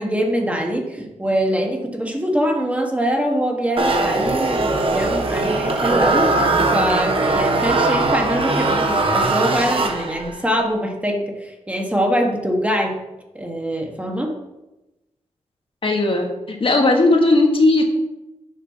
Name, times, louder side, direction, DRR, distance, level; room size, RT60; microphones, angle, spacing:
voice 1, 0.0-13.0 13.3-14.3, equal, 10° right, 1 dB, 1.4 m, -23 dB
sound 1, 3.8-10.4, right 2 dB, 45° right, 1.3 m, -20 dB
voice 2, 15.8-17.8, left 2 dB, 45° left, 1 dB, 1.6 m, -17 dB
7.6 x 5.0 x 5.7 m, 1.0 s
cardioid pair, 70°, 12 cm